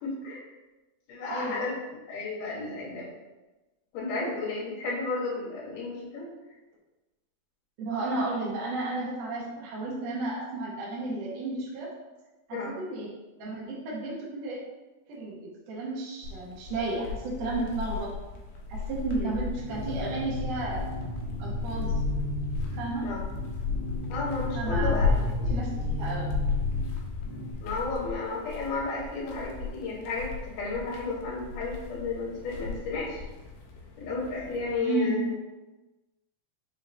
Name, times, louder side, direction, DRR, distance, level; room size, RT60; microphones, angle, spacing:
voice 1, 0.0-0.4 1.1-1.7 2.1-3.1 3.9-6.3 12.5-12.7 19.2-19.3 23.0-23.2 24.1-25.1 25.4-25.5 27.6-30.3 30.5-33.2 34.0-35.3, left 3 dB, 70° left, -6 dB, 2.7 m, -33 dB
voice 2, 1.3-1.7 7.8-11.9 12.5-13.1 13.4-14.6 15.1-18.1 18.7-20.9 21.4-21.9 22.8-23.1 24.5-25.2 25.5-26.3 34.8-35.3, right 2 dB, 75° right, -5 dB, 2.2 m, -33 dB
sound 1, 16.2-34.8, left 4 dB, 90° left, 1.5 m, -34 dB
sound 2, 19.6-27.5, left 1 dB, 55° right, 1.4 m, -35 dB
6.0 x 2.8 x 2.6 m, 1.1 s
omnidirectional pair, 4.0 m